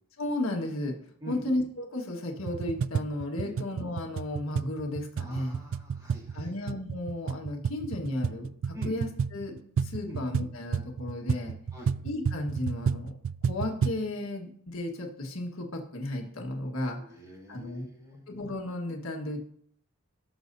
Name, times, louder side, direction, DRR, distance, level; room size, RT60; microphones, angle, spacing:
voice 1, 0.2-1.0 1.3-5.6 6.3-11.5 12.0-13.1 13.5-17.0 17.5-17.8 18.3-19.5, left 1 dB, 70° left, 1 dB, 1.5 m, -34 dB
sound 1, 2.4-14.1, right 6 dB, 65° right, 0.3 m, -32 dB
voice 2, 5.2-6.6 8.7-8.9 10.0-10.2 11.7-11.9 16.8-18.3, equal, 15° right, -1 dB, 3.3 m, -45 dB
17.5 x 6.4 x 2.7 m, 0.62 s
head